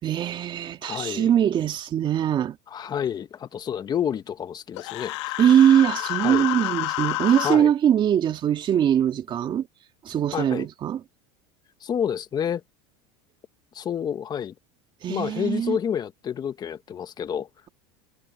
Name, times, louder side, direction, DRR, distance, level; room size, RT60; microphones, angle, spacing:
voice 1, 0.0-2.6 5.4-9.7 10.0-11.0 15.0-15.8, right 10 dB, 35° right, 2.2 m, -21 dB
voice 2, 0.8-1.3 2.7-5.2 6.2-6.5 7.4-7.7 10.3-10.7 11.8-12.6 13.7-14.5 15.1-17.5, left 8 dB, 30° left, 1.3 m, -29 dB
Human voice, 4.8-7.6, left 21 dB, 80° left, 2.0 m, -29 dB
supercardioid pair, 130°, 15 cm